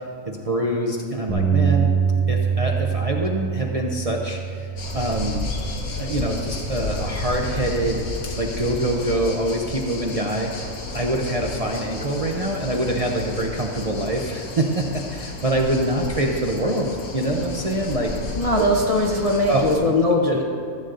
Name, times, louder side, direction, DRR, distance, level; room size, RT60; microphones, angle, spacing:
voice 1, 0.0-2.0 2.3-5.5 6.0-10.5 10.9-18.2 18.6-18.7 19.5-19.6 20.3-20.4, right 1 dB, 35° right, -1 dB, 0.6 m, -25 dB
Bass guitar, 1.3-5.7 6.4-7.5, right 6 dB, 5° left, 1.1 m, -25 dB
sound 1, 4.8-19.8, left 2 dB, 85° left, 1.6 m, -32 dB
voice 2, 18.4-20.4, left 1 dB, 40° left, -1 dB, 0.5 m, -20 dB
14.0 x 7.9 x 3.8 m, 2.5 s
omnidirectional pair, 1.5 m